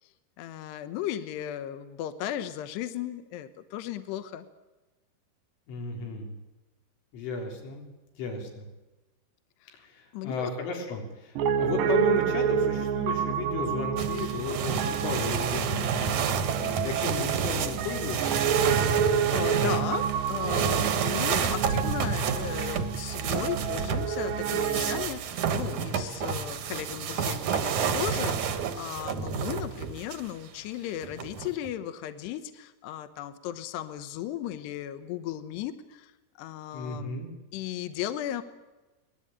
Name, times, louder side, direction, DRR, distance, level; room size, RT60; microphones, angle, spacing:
voice 1, 0.4-4.5 9.6-9.8 10.1-10.5 19.0-36.1 36.4-37.2 37.5-38.4, left 11 dB, 75° left, 11 dB, 2.9 m, -36 dB
voice 2, 5.7-6.3 7.1-7.8 8.2-8.7 9.7-16.1 16.6-18.5 36.7-37.3, left 3 dB, 90° left, 2 dB, 6.4 m, -34 dB
Piano, 11.4-25.1, right 7 dB, 80° right, 2.0 m, -29 dB
sound 1, 14.0-30.3 31.0-31.7, right 7 dB, 60° right, 2.0 m, -30 dB
24.0 x 20.0 x 8.9 m, 1.1 s
omnidirectional pair, 5.4 m